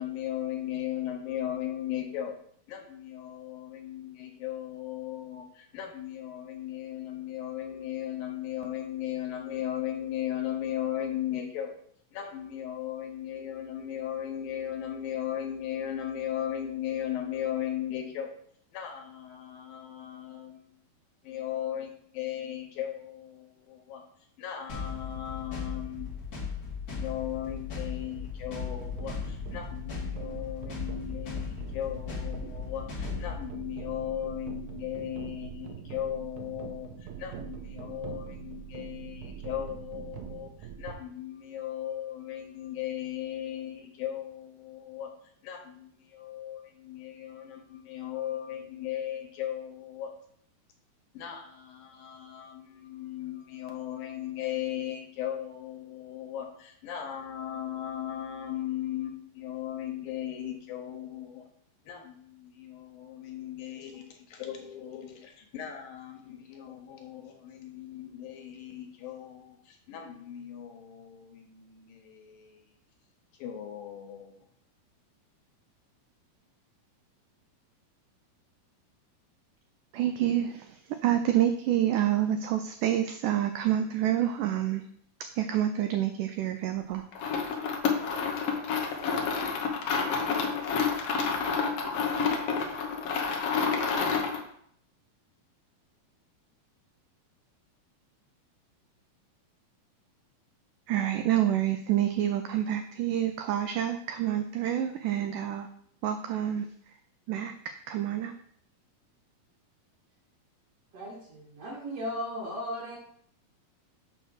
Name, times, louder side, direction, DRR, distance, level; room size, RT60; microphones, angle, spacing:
voice 1, 0.0-2.4 2.7-11.8 12.1-18.3 18.7-20.7 21.2-24.0 24.4-26.1 26.9-40.5 40.8-45.1 45.4-50.1 51.1-61.5 61.9-72.6 73.4-74.3, left 11 dB, 75° left, 2.8 m, -37 dB
sound 1, 24.7-33.4, left 6 dB, 45° left, 1.1 m, -37 dB
sound 2, 28.5-40.9, right 8 dB, 70° right, 2.1 m, -43 dB
voice 2, 79.9-84.8 85.2-87.0 100.9-105.7 106.0-106.7 107.3-108.3, right 11 dB, 90° right, 1.8 m, -28 dB
sound 3, 87.1-94.5, left 5 dB, 90° left, 1.3 m, -29 dB
voice 3, 110.9-113.0, equal, 50° right, 2.2 m, -36 dB
6.3 x 4.9 x 6.3 m
omnidirectional pair, 4.3 m